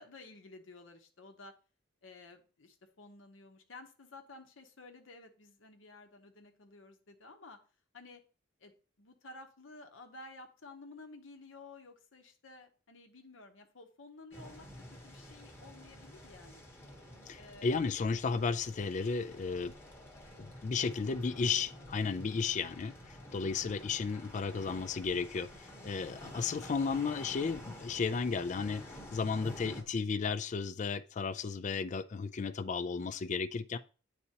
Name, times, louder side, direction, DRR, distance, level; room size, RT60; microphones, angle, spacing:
voice 1, 0.0-1.5 2.0-7.6 7.9-8.2 8.6-16.7 17.3-17.9 21.1-21.9, left 2 dB, 70° left, 0.9 m, -53 dB
sound 1, 14.3-29.8, left 1 dB, 10° left, 1.1 m, -50 dB
voice 2, 17.3-19.7 20.4-33.8, left 5 dB, 40° left, 0.3 m, -34 dB
9.6 x 4.2 x 2.8 m
head